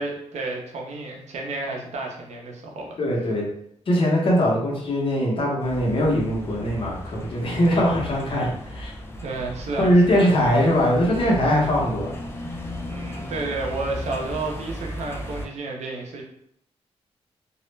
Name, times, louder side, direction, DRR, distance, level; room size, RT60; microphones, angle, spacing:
voice 1, 0.0-3.0 9.2-10.3 12.9-16.2, right 3 dB, 85° right, 0 dB, 0.6 m, -31 dB
voice 2, 3.0-3.4 3.9-8.9 9.8-12.1, equal, 50° left, -3 dB, 0.8 m, -21 dB
sound 1, 5.6-15.5, left 1 dB, 20° left, 0.3 m, -36 dB
2.3 x 2.0 x 3.1 m, 0.70 s
wide cardioid pair, 145°, 11 cm